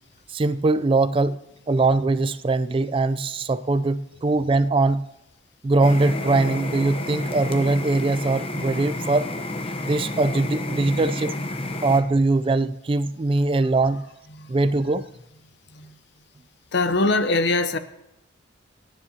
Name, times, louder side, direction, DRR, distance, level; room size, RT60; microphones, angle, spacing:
voice 1, 0.3-1.4 1.7-5.1 5.6-9.3 9.8-11.3 11.8-14.0 14.5-15.0, right 3 dB, 25° right, 0.3 m, -21 dB
sound 1, 5.8-12.0, left 2 dB, 30° left, 0.8 m, -30 dB
voice 2, 16.7-17.8, left 2 dB, 60° left, 0.7 m, -22 dB
25.0 x 9.9 x 2.8 m
head